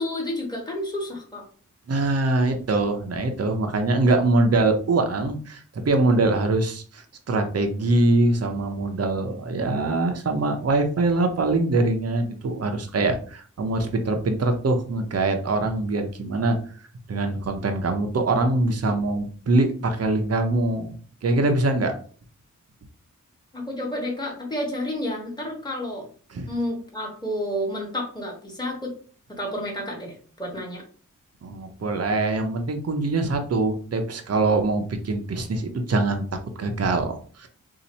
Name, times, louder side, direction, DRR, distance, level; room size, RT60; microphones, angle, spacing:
voice 1, 0.0-1.4 23.5-26.1 26.5-28.9 29.4-30.8, left 1 dB, 15° left, -1 dB, 1.2 m, -30 dB
voice 2, 1.9-16.6 17.1-20.9 21.2-21.9 26.3-26.5 31.4-37.5, right 2 dB, 50° right, 5 dB, 0.6 m, -23 dB
2.8 x 2.5 x 4.1 m, 0.43 s
wide cardioid pair, 70°, 32 cm